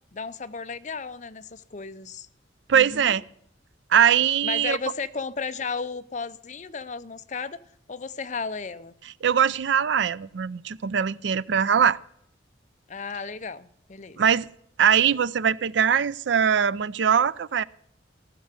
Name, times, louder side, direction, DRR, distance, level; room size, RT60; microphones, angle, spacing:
voice 1, 0.1-2.3 2.7-3.2 4.4-7.6 7.9-8.9 12.9-14.2, left 5 dB, 40° left, 13 dB, 0.6 m, -34 dB
voice 2, 2.7-3.2 3.9-4.8 9.2-12.0 14.2-14.5 14.8-17.6, right 8 dB, 70° right, 19 dB, 0.4 m, -21 dB
15.0 x 6.6 x 8.1 m, 0.68 s
head